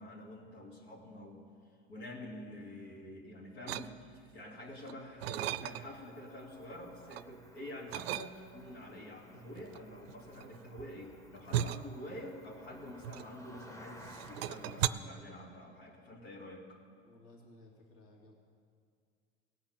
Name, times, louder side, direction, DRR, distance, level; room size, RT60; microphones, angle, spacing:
voice 1, 0.0-1.5 1.9-16.8, left 1 dB, 75° left, -3 dB, 2.5 m, -47 dB
sound 1, 3.7-4.3 4.8-6.1 6.5-7.3 7.9-8.7 9.6-13.7 14.0-14.9, right 12 dB, 65° right, 0.5 m, -37 dB
Cricket, 5.5-14.9, equal, 10° left, 1.3 m, -58 dB
voice 2, 17.0-18.3, left 2 dB, 40° left, 0 dB, 2.3 m, -58 dB
17.5 x 5.8 x 8.2 m, 2.2 s
hypercardioid pair, 80°, 33 cm